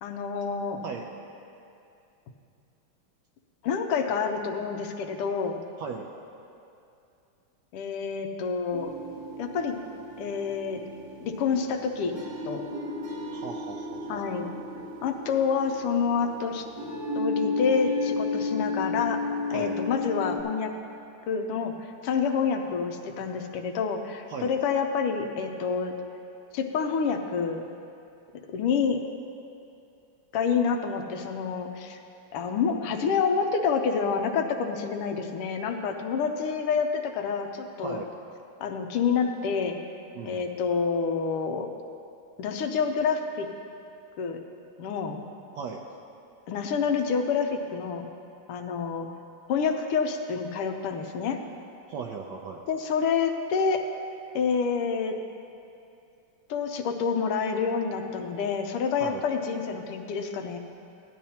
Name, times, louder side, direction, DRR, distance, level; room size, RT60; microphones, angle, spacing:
voice 1, 0.0-0.8 3.6-5.6 7.7-8.9 9.4-9.8 10.2-10.8 11.2-12.1 12.5-12.6 14.1-14.5 15.0-16.6 17.1-19.2 19.5-20.7 21.3-25.9 26.5-27.6 28.5-29.0 30.3-32.0 32.3-38.0 38.6-39.7 40.2-41.7 42.4-43.5 44.2-44.4 44.8-45.2 46.5-48.1 48.5-49.1 49.5-51.4 52.7-53.9 54.3-55.2 56.5-60.6, left 6 dB, 90° left, 4 dB, 1.7 m, -28 dB
sound 1, 8.7-20.4, left 3 dB, 40° right, 1.1 m, -33 dB
voice 2, 13.3-14.3 19.5-19.8 24.3-24.5 37.8-38.1 40.1-40.5 45.5-45.8 51.9-52.6 59.0-59.2, right 5 dB, 75° right, 1 dB, 1.0 m, -37 dB
15.5 x 10.0 x 2.8 m, 2.6 s
omnidirectional pair, 2.4 m